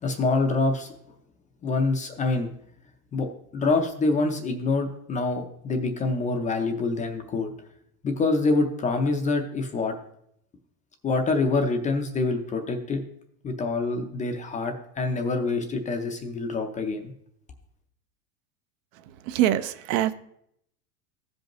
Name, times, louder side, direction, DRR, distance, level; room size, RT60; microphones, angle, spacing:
voice 1, 0.0-0.9 1.6-2.5 3.1-3.3 3.5-7.5 8.0-9.9 11.0-13.0 13.4-17.1, left 3 dB, 15° left, 0.5 m, -26 dB
voice 2, 19.3-20.1, right 12 dB, 60° right, 0.7 m, -23 dB
15.0 x 5.3 x 3.0 m
supercardioid pair, 135°, 45 cm